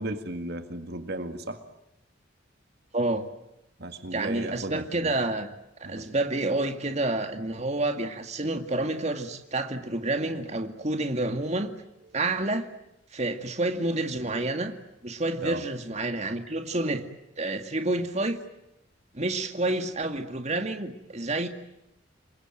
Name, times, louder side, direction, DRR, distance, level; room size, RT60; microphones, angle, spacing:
voice 1, 0.0-1.6 3.8-5.1 5.8-6.1 15.4-15.6, right 1 dB, 55° right, 8 dB, 2.0 m, -35 dB
voice 2, 2.9-3.2 4.1-5.5 5.8-11.7 12.1-12.6 13.1-14.7 15.0-17.0 17.4-18.4 19.1-21.5, right 2 dB, 35° right, 6 dB, 2.2 m, -29 dB
28.5 x 22.5 x 9.1 m, 0.87 s
head